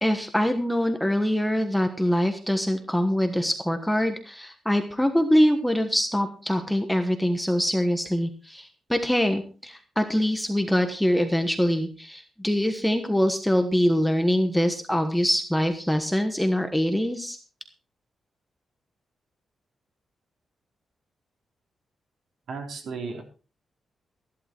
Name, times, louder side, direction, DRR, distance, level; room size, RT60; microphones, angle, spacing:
voice 1, 0.0-17.4, equal, 5° left, 6 dB, 1.2 m, -24 dB
voice 2, 22.5-23.2, right 4 dB, 70° right, 2 dB, 4.0 m, -34 dB
14.5 x 11.5 x 4.5 m, 0.35 s
wide cardioid pair, 155°, 0 cm